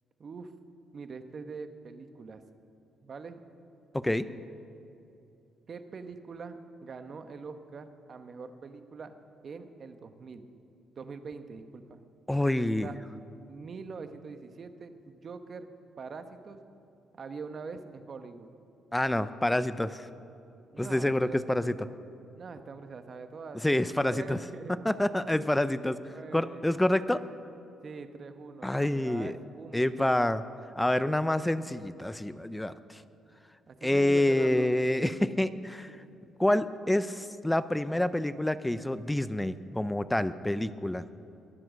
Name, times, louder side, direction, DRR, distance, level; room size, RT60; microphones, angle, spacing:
voice 1, 0.2-0.5 0.9-2.4 3.0-3.4 5.7-9.1 9.4-10.5 11.0-12.0 12.5-12.9 13.5-15.7 16.0-16.6 17.1-18.5 20.7-21.4 22.4-24.7 25.5-26.6 27.8-30.4 33.7-34.7 35.9-36.1, right 4 dB, 45° right, 9 dB, 1.0 m, -43 dB
voice 2, 3.9-4.3 12.3-12.9 18.9-20.1 20.8-21.7 23.6-24.4 24.8-26.0 26.3-27.2 28.6-29.4 29.7-30.4 30.8-33.0 33.8-35.9 36.4-41.0, left 1 dB, 10° left, 14 dB, 0.5 m, -27 dB
22.0 x 7.6 x 6.4 m, 2.7 s
cardioid pair, 90°, 0 cm